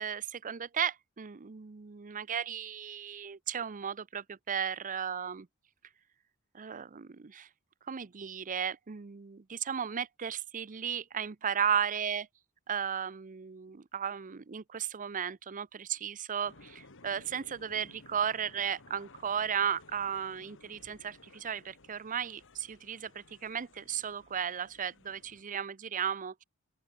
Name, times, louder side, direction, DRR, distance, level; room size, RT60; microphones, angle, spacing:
voice 1, 0.0-5.5 6.5-7.5 7.9-12.3 12.7-26.4, right 8 dB, 35° right, 0.6 m, -35 dB
sound 1, 16.4-25.4, left 3 dB, 60° left, 2.5 m, -57 dB
open air
head